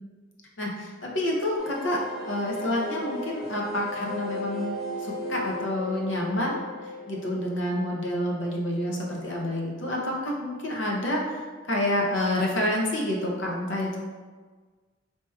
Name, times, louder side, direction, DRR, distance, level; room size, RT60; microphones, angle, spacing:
voice 1, 0.6-14.0, left 1 dB, 75° left, -2 dB, 0.7 m, -28 dB
sound 1, 1.6-9.0 9.3-9.4 9.7-9.8, equal, ahead, 0.9 m, -36 dB
4.4 x 2.8 x 2.3 m, 1.4 s
head